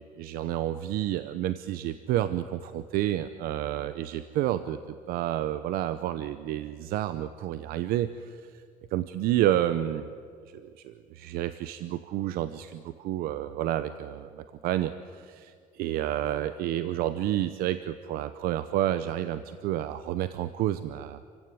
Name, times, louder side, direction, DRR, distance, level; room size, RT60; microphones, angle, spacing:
voice 1, 0.0-8.4 8.9-10.1 10.5-21.2, right 12 dB, 85° right, 12 dB, 0.8 m, -30 dB
27.0 x 16.5 x 9.4 m, 2.2 s
cardioid pair, 155°, 15 cm